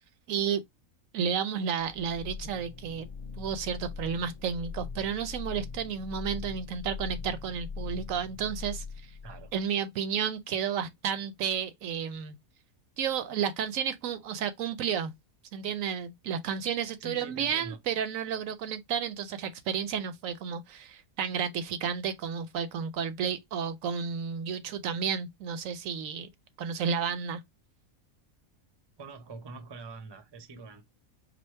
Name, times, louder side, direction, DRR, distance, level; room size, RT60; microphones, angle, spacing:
voice 1, 0.3-0.6 1.1-3.1 3.4-9.1 9.5-12.3 13.0-15.1 15.5-26.3 26.6-27.4, right 7 dB, 75° right, 0.9 m, -32 dB
sound 1, 1.8-9.6, left 5 dB, 45° left, 0.3 m, -41 dB
voice 2, 17.0-17.8 29.0-30.8, right 3 dB, 25° right, 0.5 m, -44 dB
5.1 x 2.0 x 4.4 m
omnidirectional pair, 1.5 m